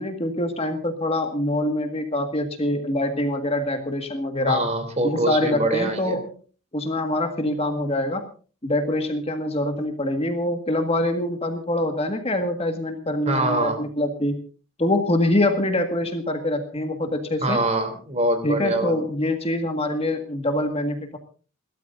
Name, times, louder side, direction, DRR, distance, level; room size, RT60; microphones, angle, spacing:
voice 1, 0.0-4.6 5.0-6.3 6.7-8.3 8.6-14.4 14.8-17.6 18.4-21.2, left 1 dB, 30° left, 5 dB, 1.7 m, -24 dB
voice 2, 4.5-6.2 13.2-13.8 17.4-19.0, right 2 dB, 30° right, 7 dB, 3.1 m, -24 dB
29.0 x 13.0 x 2.6 m, 0.37 s
head